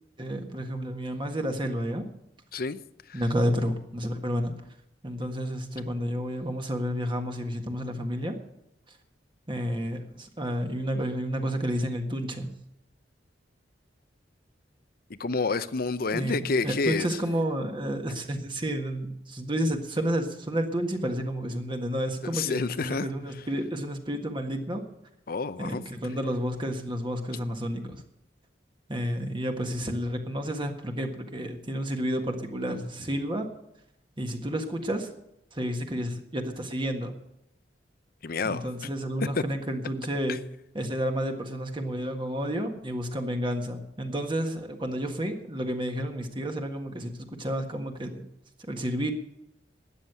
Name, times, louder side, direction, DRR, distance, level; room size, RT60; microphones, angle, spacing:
voice 1, 0.2-2.1 3.1-4.5 5.0-8.4 9.5-12.5 16.1-24.8 25.6-28.0 28.9-33.5 34.2-35.1 35.5-37.1 38.4-40.4 40.7-48.3 48.7-49.1, equal, 25° right, 1.6 m, -30 dB
voice 2, 15.2-17.1 22.3-23.1 25.3-25.8 38.2-38.9, left 3 dB, 55° left, 0.7 m, -29 dB
13.0 x 9.4 x 8.1 m
head